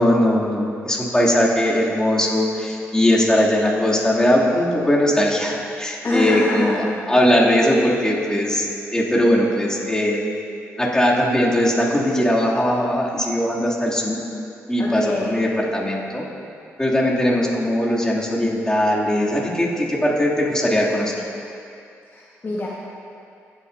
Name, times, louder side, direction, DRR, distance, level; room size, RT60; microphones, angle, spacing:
voice 1, 0.0-8.7 8.9-10.3 10.8-14.2 14.7-16.3 16.8-21.2, left 1 dB, 15° left, -5 dB, 2.5 m, -20 dB
voice 2, 6.0-6.8 14.8-15.5 22.1-22.7, left 1 dB, 40° left, -6 dB, 1.3 m, -25 dB
16.0 x 8.6 x 2.6 m, 2.5 s
supercardioid pair, 60°, 6 cm